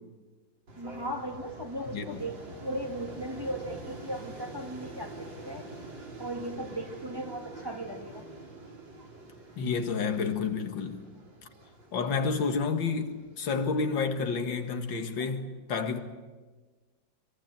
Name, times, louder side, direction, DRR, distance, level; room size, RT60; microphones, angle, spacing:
sound 1, 0.7-15.3, right 2 dB, 85° right, 4.5 m, -47 dB
voice 1, 0.8-5.7 6.2-8.2, right 1 dB, 10° right, 2.3 m, -37 dB
voice 2, 1.9-2.2 9.6-11.0 11.9-16.0, left 5 dB, 85° left, 2.4 m, -30 dB
23.5 x 22.0 x 9.1 m
omnidirectional pair, 2.0 m